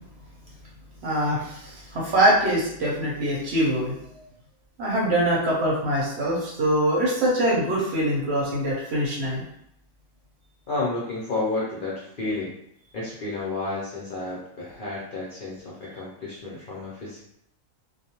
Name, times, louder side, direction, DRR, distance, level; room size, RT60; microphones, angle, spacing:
voice 1, 1.0-4.0 4.8-9.4, right 1 dB, 55° right, -4 dB, 0.9 m, -23 dB
voice 2, 10.7-12.5 12.9-17.2, left 2 dB, 55° left, -6 dB, 0.6 m, -31 dB
2.4 x 2.2 x 2.9 m, 0.74 s
omnidirectional pair, 1.4 m